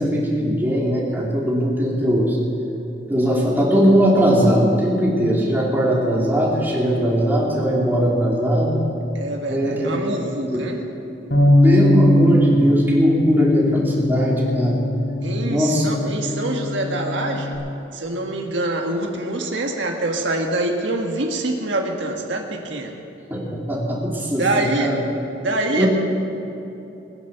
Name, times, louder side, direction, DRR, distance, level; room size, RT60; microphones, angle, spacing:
voice 1, 0.0-2.4 3.1-8.8 9.5-10.0 10.5-10.6 11.6-14.9 15.4-15.8 23.3-25.0 25.8-25.9, equal, 10° right, -4 dB, 3.1 m, -19 dB
voice 2, 9.1-10.8 15.2-17.6 17.9-22.9 24.3-24.9 25.4-25.9, right 2 dB, 80° right, 2 dB, 1.6 m, -25 dB
Bass guitar, 11.3-17.6, left 1 dB, 70° left, 4.9 m, -20 dB
20.5 x 10.0 x 6.9 m, 3.0 s
head